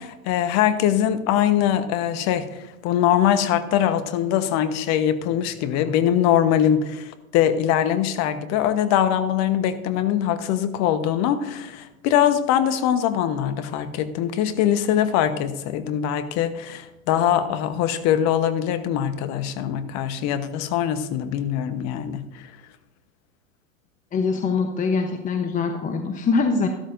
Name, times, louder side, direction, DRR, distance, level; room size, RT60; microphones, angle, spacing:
voice 1, 0.0-22.4, left 10 dB, 40° left, 11 dB, 1.1 m, -22 dB
voice 2, 24.1-26.7, left 4 dB, 20° left, 5 dB, 0.9 m, -23 dB
13.5 x 12.5 x 2.6 m, 0.98 s
hypercardioid pair, 105°, 41 cm